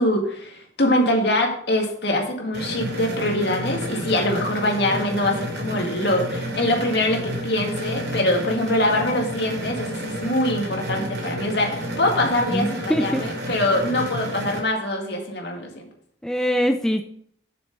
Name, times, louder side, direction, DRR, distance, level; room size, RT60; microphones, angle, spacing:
voice 1, 0.0-15.9, left 1 dB, 65° left, 1 dB, 2.0 m, -23 dB
sound 1, 2.5-14.6, equal, 65° right, 2.6 m, -31 dB
voice 2, 12.5-13.2 16.2-17.0, equal, 5° left, 6 dB, 0.4 m, -22 dB
7.0 x 6.9 x 5.3 m, 0.65 s
head